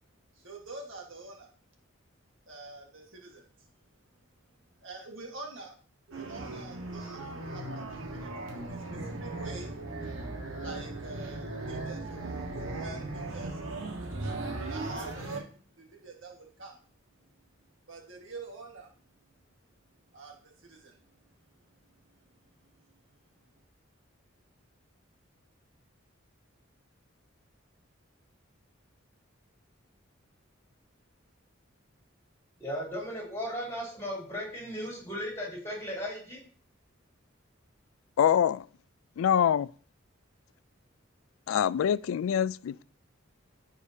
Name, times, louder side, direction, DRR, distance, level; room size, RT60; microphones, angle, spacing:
voice 1, 0.3-1.5 2.5-3.7 4.8-5.8 6.1-10.1 10.5-13.8 14.6-16.8 17.9-18.9 20.1-21.0 22.6-23.0, right 3 dB, 75° right, 1.7 m, -47 dB
sound 1, 6.1-15.4, right 2 dB, 90° right, 1.5 m, -37 dB
voice 2, 32.6-36.4, equal, 15° left, 3.1 m, -36 dB
voice 3, 38.2-38.7 39.2-39.7 41.5-42.8, left 9 dB, 85° left, 0.3 m, -25 dB
14.5 x 4.9 x 2.8 m
head